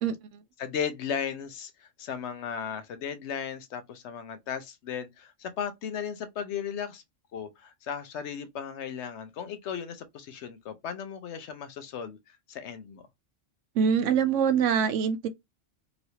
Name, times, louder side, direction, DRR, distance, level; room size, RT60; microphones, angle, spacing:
voice 1, 0.0-0.4 13.7-15.3, right 7 dB, 85° right, 0.9 m, -24 dB
voice 2, 0.6-7.0 7.3-12.2 12.5-13.0, left 7 dB, 70° left, 0.9 m, -36 dB
3.0 x 2.9 x 2.7 m
omnidirectional pair, 1.2 m